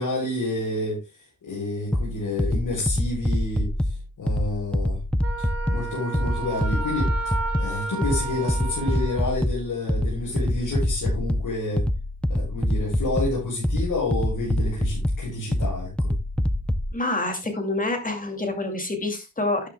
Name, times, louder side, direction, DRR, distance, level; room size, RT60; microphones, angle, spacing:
voice 1, 0.0-5.0 5.4-11.9 12.3-16.1, left 2 dB, 90° left, 6.0 m, -29 dB
sound 1, 1.9-16.9, left 1 dB, 5° left, 0.5 m, -26 dB
Wind instrument woodwind instrument, 5.2-9.4, right 5 dB, 50° right, 3.1 m, -33 dB
voice 2, 16.9-19.7, left 2 dB, 25° left, 2.3 m, -27 dB
12.0 x 10.0 x 2.2 m
wide cardioid pair, 110°, 31 cm